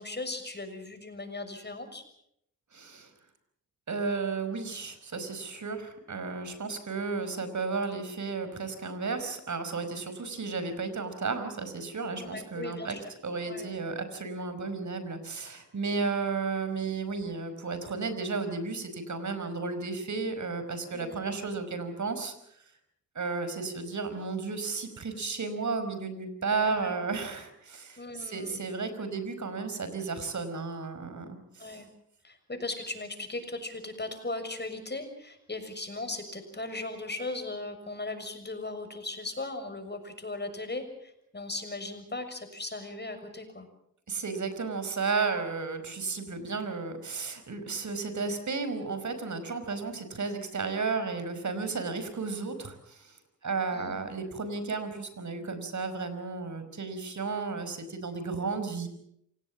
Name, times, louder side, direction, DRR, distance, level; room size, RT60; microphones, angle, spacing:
voice 1, 0.0-2.0 12.2-13.0 13.5-13.8 15.9-16.1 20.9-21.6 26.6-26.9 28.0-28.6 31.6-31.9 32.2-43.7 49.8-50.0 53.7-54.0, left 2 dB, 35° left, 8 dB, 6.6 m, -38 dB
voice 2, 2.7-3.1 3.9-13.0 13.2-22.3 23.2-31.8 44.1-58.9, right 4 dB, 65° right, 10 dB, 5.1 m, -33 dB
28.0 x 18.0 x 7.4 m, 0.74 s
cardioid pair, 55°, 32 cm